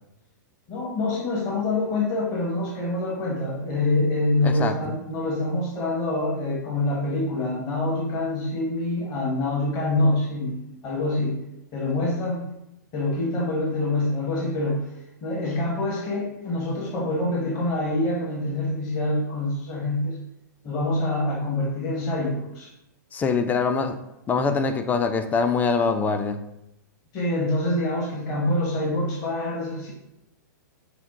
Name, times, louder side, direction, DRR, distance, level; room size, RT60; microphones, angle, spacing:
voice 1, 0.7-11.4 11.7-12.4 12.9-14.9 15.2-20.2 20.6-22.7 27.1-29.9, left 2 dB, 35° left, -3 dB, 1.2 m, -26 dB
voice 2, 4.4-4.9 23.1-23.9 24.3-26.4, left 5 dB, 15° left, 8 dB, 0.4 m, -23 dB
5.8 x 2.2 x 3.7 m, 0.86 s
hypercardioid pair, 120°, 10 cm